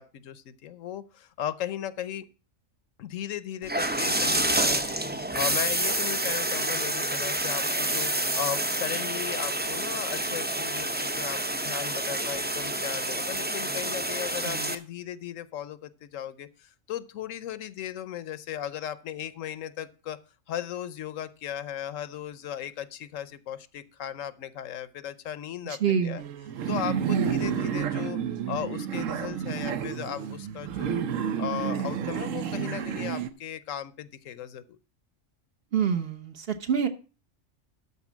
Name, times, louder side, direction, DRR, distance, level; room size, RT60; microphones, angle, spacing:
voice 1, 0.0-2.2 3.0-20.2 20.5-26.2 26.7-28.2 28.5-31.0 31.4-34.8, left 10 dB, 80° left, 16 dB, 1.1 m, -36 dB
sound 1, 3.6-14.8, right 1 dB, 15° right, 0.3 m, -28 dB
voice 2, 25.6-26.2 35.7-36.9, right 7 dB, 50° right, 6 dB, 1.1 m, -27 dB
sound 2, 26.2-33.3, right 8 dB, 80° right, 1.2 m, -30 dB
12.5 x 4.2 x 7.2 m, 0.36 s
omnidirectional pair, 1.3 m